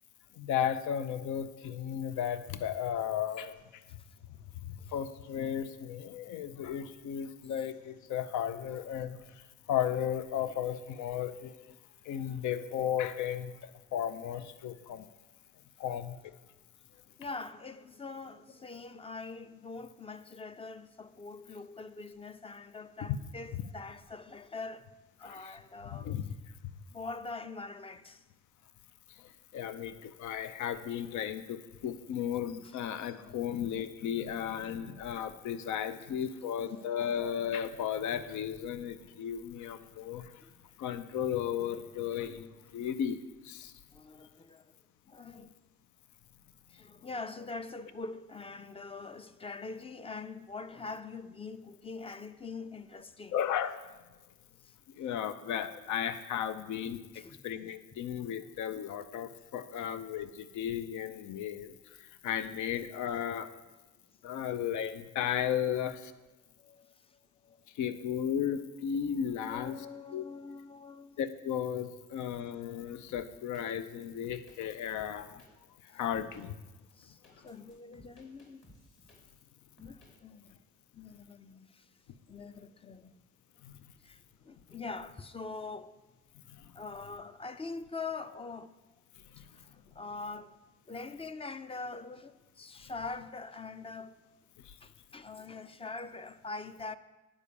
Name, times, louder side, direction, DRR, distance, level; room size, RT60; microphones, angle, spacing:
voice 1, 0.4-3.8 4.9-11.7 12.0-15.1 15.8-16.1 25.2-25.5 25.9-26.3 29.2-40.3 40.8-43.2 43.4-43.7 53.3-53.9 54.9-63.5 64.2-66.1 67.7-69.8 70.1-70.2 71.2-75.4 75.8-76.5 83.6-83.8 86.5-86.6 89.3-89.4 94.6-94.8, left 9 dB, 75° left, 0.6 m, -35 dB
voice 2, 17.2-24.9 25.2-26.4 26.9-28.2 32.6-32.8 33.1-33.6 35.8-36.6 40.4-40.8 43.9-44.7 45.1-45.6 46.7-53.4 54.6-54.7 57.1-57.4 59.8-60.0 66.6-67.7 69.4-71.2 75.9-76.0 76.9-78.6 79.8-80.6 80.9-81.9 82.3-83.2 84.0-86.0 86.7-88.7 89.4-90.6 90.9-94.2 94.8-97.0, left 3 dB, 20° left, 0.4 m, -44 dB
sound 1, 73.1-73.6 74.0-75.5 76.1-76.4 76.9-79.5 79.8-80.1, left 1 dB, 40° left, 2.7 m, -58 dB
9.7 x 5.0 x 6.9 m
cardioid pair, 90°, 30 cm